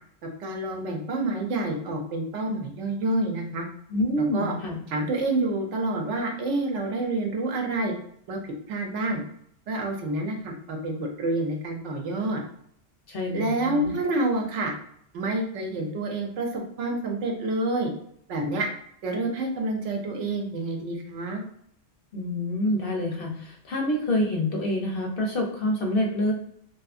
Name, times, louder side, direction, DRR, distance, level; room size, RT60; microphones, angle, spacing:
voice 1, 0.2-3.6 4.2-4.5 4.9-7.9 8.3-8.4 8.7-9.2 9.7-12.4 13.3-14.7 15.1-17.9 18.3-18.7 19.0-21.4, right 2 dB, 80° right, 2 dB, 0.9 m, -28 dB
voice 2, 3.9-4.8 13.1-14.0 22.1-26.3, left 1 dB, 60° left, 0 dB, 0.6 m, -27 dB
2.6 x 2.3 x 2.4 m, 0.68 s
omnidirectional pair, 1.2 m